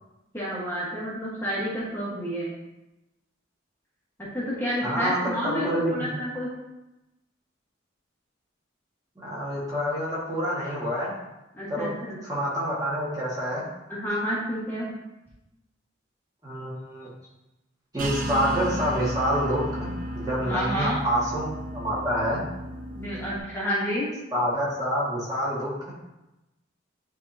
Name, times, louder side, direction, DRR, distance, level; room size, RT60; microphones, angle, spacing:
voice 1, 0.3-2.5 4.2-6.5 11.5-12.2 13.9-14.9 20.4-21.0 22.9-24.1, equal, 10° left, -8 dB, 1.4 m, -30 dB
voice 2, 4.8-6.1 9.2-11.1 11.7-11.9 12.2-13.6 16.4-17.1 17.9-21.5 21.7-22.5 24.3-25.9, equal, 20° right, -7 dB, 1.7 m, -27 dB
sound 1, 18.0-23.4, equal, 45° right, 0.6 m, -34 dB
9.4 x 3.6 x 2.7 m, 0.98 s
head